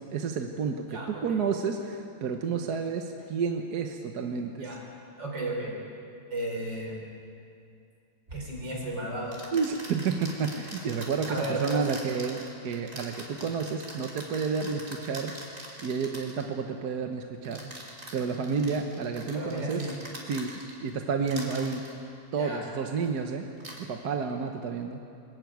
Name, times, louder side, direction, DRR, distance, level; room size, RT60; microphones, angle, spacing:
voice 1, 0.0-4.7 9.5-15.4 15.8-17.7 18.1-19.9 20.3-21.8 22.3-23.5 23.8-25.0, right 5 dB, 65° right, 4 dB, 1.5 m, -30 dB
voice 2, 0.9-1.4 4.6-4.8 5.2-5.7 6.3-7.0 8.3-9.4 9.9-10.0 11.3-11.8 19.3-19.9 22.4-22.6, right 1 dB, 85° right, -1 dB, 5.3 m, -34 dB
sound 1, 8.3-8.4 9.3-16.5 17.4-20.9 21.2-21.9 23.0-23.2 23.6-23.8, right 1 dB, 45° right, 3.8 m, -43 dB
24.0 x 14.5 x 9.3 m, 2.5 s
omnidirectional pair, 1.9 m